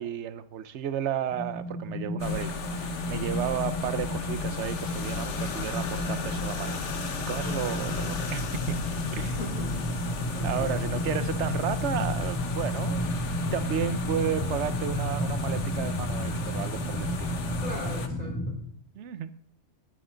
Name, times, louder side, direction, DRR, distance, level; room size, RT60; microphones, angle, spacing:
voice 1, 0.0-7.0 7.3-8.8 9.1-9.4 10.4-13.0 13.5-17.4 18.9-19.3, right 10 dB, 65° right, 14 dB, 1.0 m, -33 dB
sound 1, 1.3-18.5, left 1 dB, 15° left, 1.8 m, -32 dB
sound 2, 2.2-18.1, left 5 dB, 70° left, 1.5 m, -36 dB
voice 2, 7.4-7.9 9.1-10.0 10.3-11.1 17.6-18.6, equal, 30° left, 1 dB, 4.0 m, -40 dB
19.5 x 11.5 x 3.9 m, 0.62 s
omnidirectional pair, 1.3 m